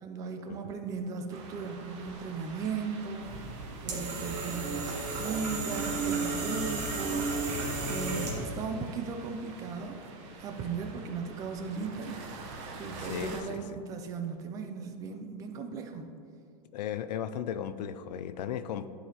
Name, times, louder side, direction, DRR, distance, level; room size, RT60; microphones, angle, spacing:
voice 1, 0.0-3.5 3.8-10.0 10.4-12.5 12.8-16.1, right 5 dB, 15° right, 5 dB, 0.3 m, -37 dB
sound 1, 1.3-13.4, right 3 dB, 45° right, 0.9 m, -46 dB
sound 2, 3.2-8.6, right 3 dB, 90° right, 1.8 m, -33 dB
voice 2, 13.0-13.6 16.7-18.9, left 9 dB, 90° left, 12 dB, 0.5 m, -36 dB
11.0 x 4.9 x 2.9 m, 2.3 s
supercardioid pair, 165°, 21 cm